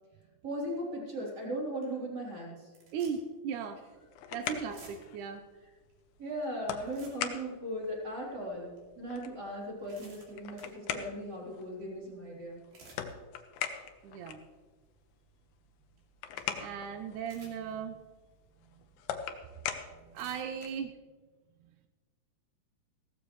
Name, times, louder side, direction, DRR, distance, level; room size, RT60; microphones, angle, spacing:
voice 1, 0.4-2.7 4.3-4.5 6.2-12.6, right 1 dB, 25° right, -4 dB, 3.7 m, -38 dB
sound 1, 1.3-1.4 1.8-2.0 2.6-3.4 3.6-3.8 4.5-5.3 5.9-6.0 6.4-6.5 6.7-7.5 8.0-8.1 8.8-8.9 9.5-10.8 12.5-13.1 13.6-13.9 14.4-14.5 16.0-16.1 16.4-16.5 17.2-17.8 18.3-18.4 19.3-19.4 19.9-20.7, right 3 dB, 60° right, 4.1 m, -55 dB
voice 2, 2.9-3.8 4.3-5.4 14.0-14.4 16.6-18.0 20.1-20.9, right 7 dB, 85° right, 6 dB, 1.7 m, -37 dB
sound 2, 3.8-20.9, left 9 dB, 80° left, 2.7 m, -43 dB
16.5 x 14.0 x 3.2 m, 1.3 s
omnidirectional pair, 4.4 m